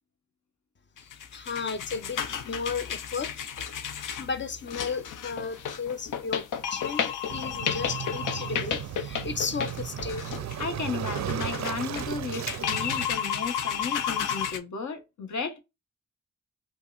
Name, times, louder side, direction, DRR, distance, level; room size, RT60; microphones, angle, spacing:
sound 1, 1.0-14.6, left 8 dB, 80° left, 0.6 m, -32 dB
voice 1, 1.0-3.3 4.0-10.3, left 5 dB, 35° left, 0.6 m, -34 dB
Waves surf, 7.3-13.1, right 11 dB, 60° right, 0.4 m, -35 dB
voice 2, 10.6-15.6, left 5 dB, 65° left, 1.0 m, -34 dB
5.3 x 2.2 x 2.2 m
cardioid pair, 75°, 31 cm